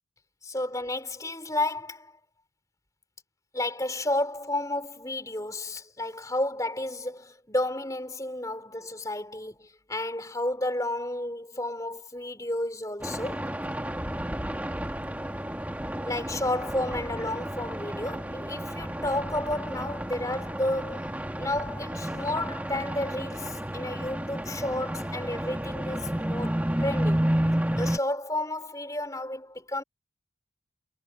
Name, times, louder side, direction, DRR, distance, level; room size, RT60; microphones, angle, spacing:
voice 1, 0.4-2.1 3.5-13.5 16.0-21.1 21.4-27.3 27.8-29.8, left 1 dB, 15° left, 4.6 m, -32 dB
sound 1, 13.0-28.0, right 1 dB, 10° right, 1.7 m, -31 dB
head